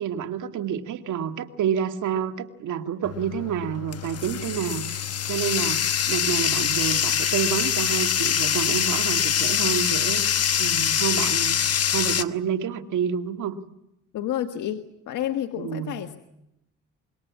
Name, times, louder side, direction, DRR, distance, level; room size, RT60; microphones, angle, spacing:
voice 1, 0.0-13.6 15.6-16.0, right 8 dB, 80° right, 6 dB, 2.3 m, -29 dB
Bathtub (filling or washing), 3.0-12.2, left 9 dB, 55° left, 1.3 m, -24 dB
voice 2, 14.1-16.2, left 11 dB, 80° left, 6 dB, 1.6 m, -30 dB
26.0 x 22.5 x 8.6 m, 0.85 s
cardioid pair, 90°, 30 cm